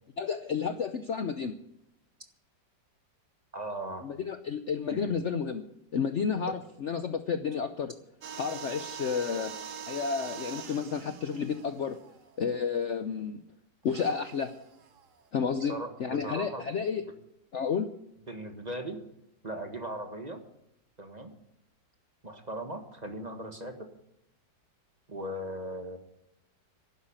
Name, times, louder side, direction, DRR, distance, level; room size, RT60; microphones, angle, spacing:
voice 1, 0.2-1.5 4.0-5.6 5.9-7.9 8.4-9.5 9.9-12.0 12.4-13.4 13.8-14.5 15.3-17.0 17.5-17.9, left 6 dB, 55° left, 10 dB, 0.8 m, -31 dB
voice 2, 3.5-4.1 4.9-5.1 6.5-6.6 15.6-16.6 18.3-19.0 19.4-20.4 21.0-21.3 22.2-23.9 25.1-26.0, right 1 dB, 25° right, 5 dB, 1.5 m, -38 dB
sound 1, 8.2-12.8 13.8-15.3, right 7 dB, 50° right, 1.3 m, -43 dB
12.0 x 9.8 x 8.8 m, 0.84 s
omnidirectional pair, 1.9 m